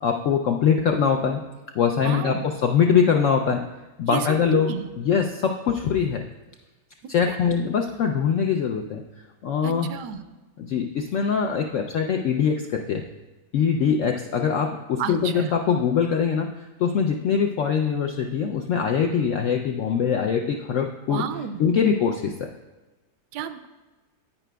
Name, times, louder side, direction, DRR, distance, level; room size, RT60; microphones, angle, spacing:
voice 1, 0.0-1.4 1.7-3.6 4.0-6.2 7.1-9.0 9.4-9.9 10.6-13.0 13.5-21.2 21.6-22.5, left 7 dB, 75° left, 3 dB, 0.7 m, -23 dB
voice 2, 2.0-2.4 4.1-4.3 4.5-4.9 7.3-7.4 9.6-10.2 15.0-15.5 21.1-21.6 23.3-23.7, right 8 dB, 80° right, 10 dB, 1.1 m, -31 dB
9.9 x 9.2 x 2.2 m, 1.2 s
omnidirectional pair, 1.8 m